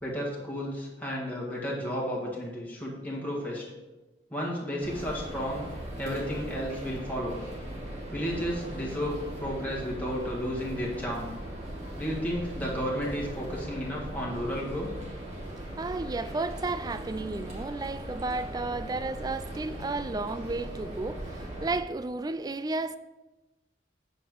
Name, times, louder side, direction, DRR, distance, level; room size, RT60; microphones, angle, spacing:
voice 1, 0.0-3.6 4.3-5.7 6.0-7.4 8.1-11.3 12.0-14.9, equal, 10° left, 1.8 m, -32 dB
sound 1, 4.8-21.8, right 1 dB, 40° right, 2.2 m, -39 dB
voice 2, 15.8-23.0, right 3 dB, 20° right, 0.3 m, -33 dB
8.9 x 5.4 x 4.7 m
head